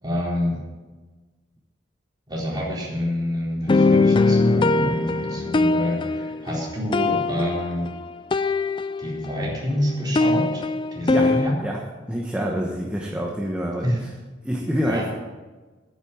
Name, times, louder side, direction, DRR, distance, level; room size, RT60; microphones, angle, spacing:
voice 1, 0.0-0.6 2.3-7.8 9.0-10.7 10.9-11.6 13.8-14.0 14.8-15.0, left 1 dB, 20° right, -5 dB, 4.1 m, -27 dB
sound 1, 3.7-9.5 9.7-11.5, left 3 dB, 25° left, 0.4 m, -22 dB
voice 2, 12.1-14.1 14.4-15.1, equal, 5° right, -1 dB, 1.1 m, -27 dB
10.5 x 9.6 x 7.3 m, 1.3 s
head